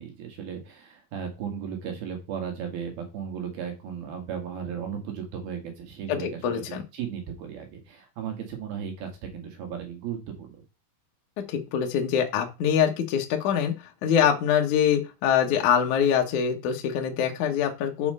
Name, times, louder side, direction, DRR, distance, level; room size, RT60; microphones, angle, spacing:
voice 1, 0.0-10.6, right 7 dB, 65° right, 3 dB, 3.4 m, -36 dB
voice 2, 6.1-6.8 11.5-13.7 14.0-18.1, left 8 dB, 60° left, 3 dB, 2.2 m, -24 dB
7.5 x 5.6 x 5.5 m, 0.28 s
omnidirectional pair, 4.8 m